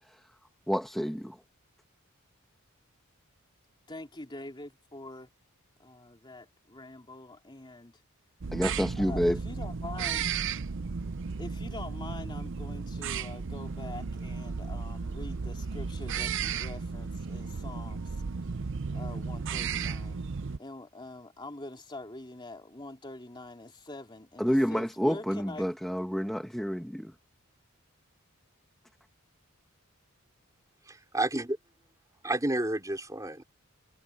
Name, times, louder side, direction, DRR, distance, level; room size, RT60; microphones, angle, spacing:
voice 1, 0.7-1.4 8.5-9.4 24.4-27.1, equal, ahead, 1.6 m, -28 dB
voice 2, 3.9-5.3 5.8-7.9 9.0-10.2 11.4-18.2 18.9-20.2 20.6-25.6, left 2 dB, 20° left, 3.1 m, -44 dB
sound 1, 8.4-20.6, right 5 dB, 55° right, 0.6 m, -34 dB
voice 3, 30.9-31.6 32.2-33.4, right 1 dB, 15° right, 3.9 m, -30 dB
head